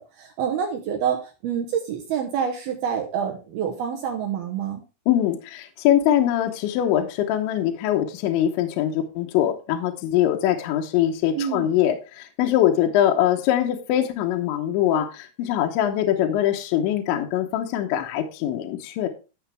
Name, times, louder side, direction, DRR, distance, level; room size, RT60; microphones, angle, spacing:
voice 1, 0.2-4.8 11.3-11.7, right 8 dB, 80° right, 3 dB, 2.2 m, -27 dB
voice 2, 5.1-19.1, left 11 dB, 75° left, 3 dB, 3.0 m, -22 dB
13.0 x 6.9 x 3.4 m, 0.31 s
omnidirectional pair, 6.0 m